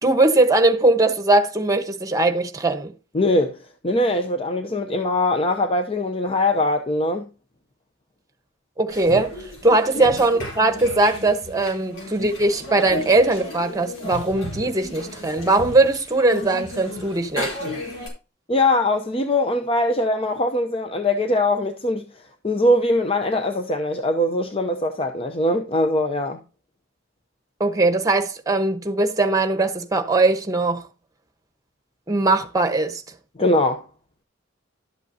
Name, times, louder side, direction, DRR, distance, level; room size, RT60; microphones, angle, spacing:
voice 1, 0.0-2.9 8.8-17.6 27.6-30.8 32.1-33.0, right 2 dB, 20° right, 1.0 m, -20 dB
voice 2, 3.1-3.6 3.8-7.3 9.9-10.1 18.5-22.0 22.4-26.4 33.4-33.8, left 1 dB, 30° left, 0.7 m, -21 dB
sound 1, 8.9-18.1, left 1 dB, 90° left, 4.5 m, -34 dB
12.0 x 8.0 x 2.7 m
head